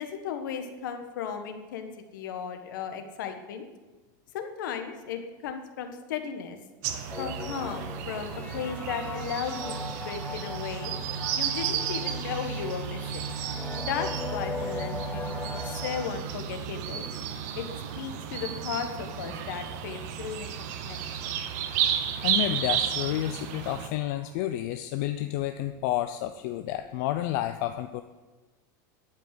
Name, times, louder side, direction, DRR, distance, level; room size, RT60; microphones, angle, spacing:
voice 1, 0.0-3.6 4.3-6.6 7.2-10.9 11.4-13.3 13.8-17.1 17.5-17.7 18.0-21.3, left 7 dB, 85° left, 6 dB, 1.4 m, -36 dB
sound 1, 6.8-23.9, right 8 dB, 60° right, 1.0 m, -33 dB
sound 2, 7.1-16.1, left 4 dB, 15° left, 0.6 m, -39 dB
voice 2, 22.2-28.0, left 13 dB, 55° left, 8 dB, 0.5 m, -30 dB
12.0 x 5.4 x 7.7 m, 1.2 s
supercardioid pair, 155°, 10 cm